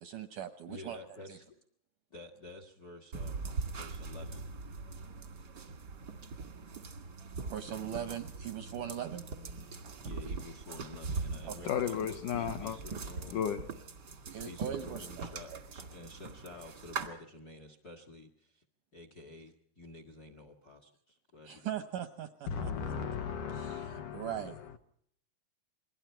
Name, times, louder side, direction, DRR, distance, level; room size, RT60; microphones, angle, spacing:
voice 1, 0.0-1.0 1.3-1.4 7.5-9.2 11.5-11.7 14.3-15.6 21.4-22.9 23.5-24.6, right 9 dB, 75° right, 1.9 m, -40 dB
voice 2, 0.7-1.6 2.1-4.5 10.0-13.5 14.4-18.6 18.9-21.7, left 2 dB, 50° left, 1.1 m, -50 dB
sound 1, 3.1-17.1, right 4 dB, 55° right, 1.1 m, -42 dB
voice 3, 11.6-12.8 13.3-13.7 22.5-24.5, left 8 dB, 70° left, 2.0 m, -35 dB
28.0 x 21.5 x 4.5 m
omnidirectional pair, 4.6 m